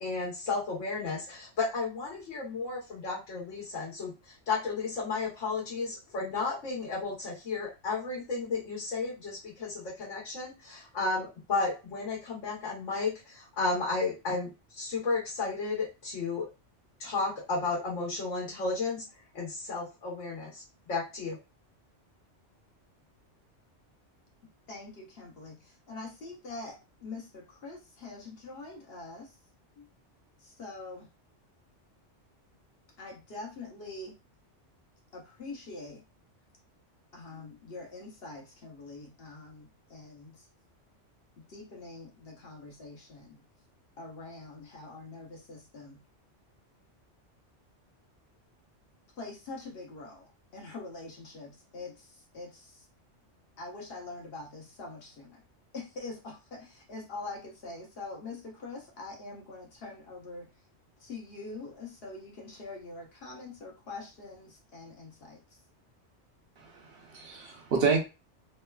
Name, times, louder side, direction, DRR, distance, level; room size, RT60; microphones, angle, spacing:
voice 1, 0.0-16.4 17.0-19.0 19.3-20.6 20.9-21.4, left 3 dB, 80° left, -5 dB, 1.2 m, -33 dB
voice 2, 24.7-29.3 29.8-29.9 30.4-31.1 33.0-34.1 35.1-36.0 37.1-40.4 41.5-43.4 44.0-46.0 49.2-50.3 50.5-52.8 53.6-55.4 55.7-60.5 61.0-65.4, left 3 dB, 60° left, -1 dB, 0.9 m, -44 dB
voice 3, 66.6-68.0, right 5 dB, 60° right, 2 dB, 0.8 m, -29 dB
3.0 x 2.1 x 2.2 m, 0.28 s
omnidirectional pair, 1.2 m